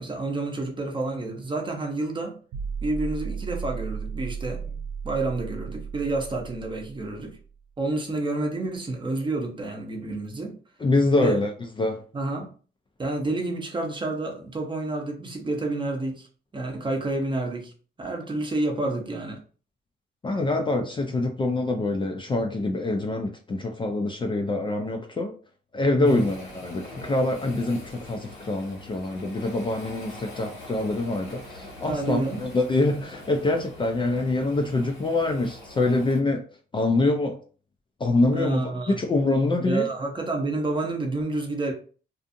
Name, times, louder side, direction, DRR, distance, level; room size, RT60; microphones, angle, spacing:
voice 1, 0.0-2.4 2.8-4.8 5.0-7.4 7.8-10.6 11.2-11.4 12.1-12.5 13.0-16.3 16.5-17.7 18.0-19.4 26.0-26.3 31.9-32.5 38.3-39.0 39.6-41.7, right 2 dB, 25° right, 0.7 m, -29 dB
sound 1, 2.5-7.6, right 6 dB, 80° right, 0.4 m, -35 dB
voice 2, 10.8-11.5 11.8-12.0 20.2-25.3 25.7-36.4 36.7-37.4 38.0-39.9, left 2 dB, 25° left, 0.4 m, -25 dB
Waves surf, 26.0-36.2, left 1 dB, 90° left, 1.2 m, -44 dB
2.5 x 2.4 x 2.6 m
cardioid pair, 90°, 20 cm